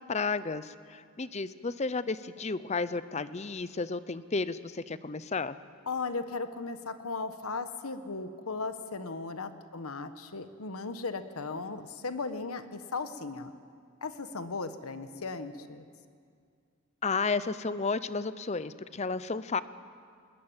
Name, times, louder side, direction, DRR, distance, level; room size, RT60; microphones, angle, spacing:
voice 1, 0.0-5.6 17.0-19.6, left 4 dB, 30° left, 15 dB, 0.6 m, -32 dB
voice 2, 5.9-13.5 14.0-15.8, left 4 dB, 85° left, 10 dB, 1.3 m, -37 dB
21.0 x 20.0 x 8.9 m, 2.2 s
head